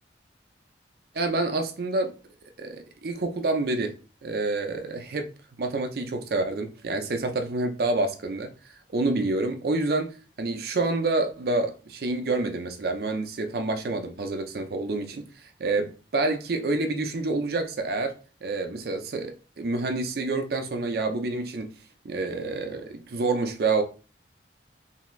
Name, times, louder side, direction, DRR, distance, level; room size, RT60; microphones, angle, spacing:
voice 1, 1.1-2.1 2.6-3.9 4.2-5.3 5.6-8.5 8.9-18.1 18.4-21.7 22.0-23.8, right 3 dB, 60° right, 0.5 m, -28 dB
3.1 x 2.7 x 2.3 m
head